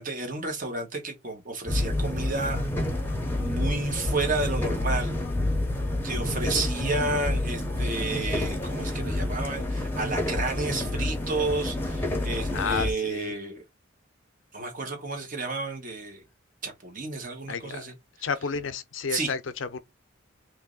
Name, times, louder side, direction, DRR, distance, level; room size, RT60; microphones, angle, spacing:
voice 1, 0.0-2.7 2.9-3.0 3.4-5.2 6.0-13.6 14.5-16.2 16.6-17.9 19.1-19.3, right 3 dB, 40° right, 1.1 m, -31 dB
sound 1, 1.7-12.9, left 1 dB, 10° left, 0.7 m, -28 dB
voice 2, 12.5-13.3 17.5-17.9 18.2-19.8, left 5 dB, 65° left, 0.5 m, -31 dB
3.0 x 2.7 x 3.7 m
head